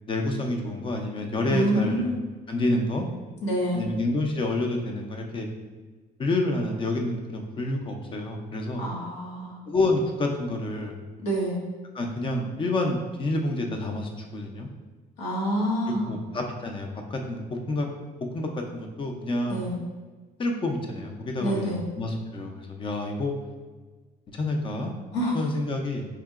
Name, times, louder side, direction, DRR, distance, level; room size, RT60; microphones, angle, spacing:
voice 1, 0.1-2.1 2.5-3.1 3.7-5.5 6.2-8.8 9.7-11.0 11.9-14.7 16.0-17.9 18.3-19.6 20.4-23.3 24.3-24.9 25.3-26.1, left 2 dB, 30° left, 3 dB, 0.6 m, -28 dB
voice 2, 1.5-2.2 3.4-3.8 8.8-9.6 11.2-11.6 15.2-16.1 19.5-19.8 21.4-21.8 25.1-25.4, equal, 90° left, -4 dB, 1.2 m, -27 dB
4.6 x 2.7 x 2.4 m, 1.4 s
cardioid pair, 110°, 17 cm